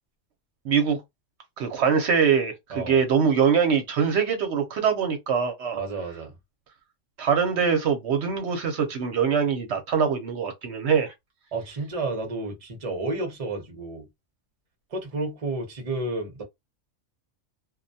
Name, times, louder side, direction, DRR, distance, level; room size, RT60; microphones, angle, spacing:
voice 1, 0.6-1.0 1.6-5.8 7.2-11.1, right 6 dB, 65° right, 0.8 m, -23 dB
voice 2, 5.8-6.3 11.5-14.1 14.9-16.4, right 2 dB, 35° right, 0.6 m, -31 dB
2.3 x 2.1 x 2.6 m
omnidirectional pair, 1.3 m